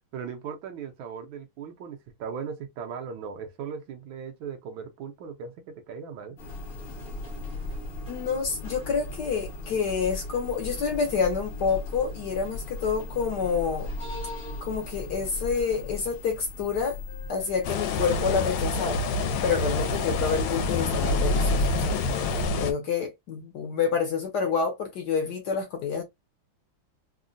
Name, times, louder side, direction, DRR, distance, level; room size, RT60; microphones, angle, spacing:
voice 1, 0.1-6.4, right 6 dB, 75° right, 1.4 m, -38 dB
sound 1, 6.4-22.5, left 1 dB, 40° left, 0.8 m, -35 dB
voice 2, 8.1-13.9 14.6-17.0 17.3-19.0 19.4-22.0 22.6-26.0, left 6 dB, 65° left, 1.1 m, -28 dB
Wind instrument woodwind instrument, 17.1-21.4, left 2 dB, 30° right, 0.5 m, -49 dB
sound 2, 17.6-22.7, left 3 dB, 80° left, 1.4 m, -28 dB
3.7 x 2.1 x 2.5 m
omnidirectional pair, 2.3 m